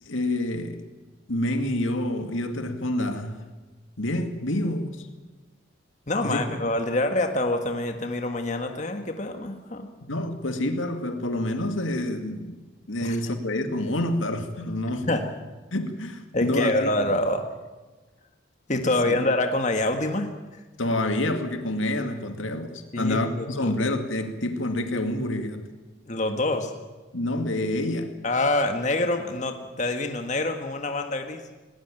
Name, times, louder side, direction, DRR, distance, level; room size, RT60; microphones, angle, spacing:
voice 1, 0.0-0.8 1.3-3.4 4.0-5.1 6.2-6.6 10.1-12.6 12.9-15.1 15.7-16.9 18.9-19.2 20.8-25.7 27.1-28.2, left 1 dB, 85° left, 2.2 m, -28 dB
voice 2, 6.1-9.9 13.0-13.2 15.0-15.2 16.3-17.4 18.7-20.6 22.9-23.7 26.1-26.7 28.2-31.4, left 2 dB, 35° left, 1.7 m, -26 dB
19.5 x 19.0 x 9.0 m
head